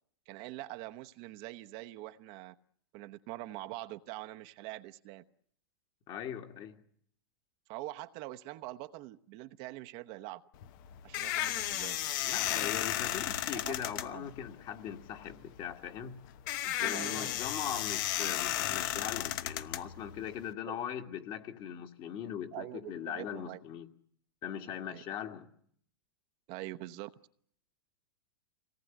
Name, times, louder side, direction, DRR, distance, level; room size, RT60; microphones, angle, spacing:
voice 1, 0.3-2.5 2.9-5.2 7.7-10.4 11.0-12.0 13.6-14.3 16.6-17.4 20.7-20.8 22.5-23.6 24.9-25.0 26.5-27.1, right 17 dB, 45° right, 1.0 m, -44 dB
voice 2, 6.1-6.8 12.3-16.2 16.8-23.9 24.4-25.5, left 9 dB, 40° left, 2.1 m, -40 dB
sound 1, 10.5-20.5, left 13 dB, 55° left, 1.0 m, -34 dB
25.0 x 18.5 x 9.3 m
hypercardioid pair, 120°, 13 cm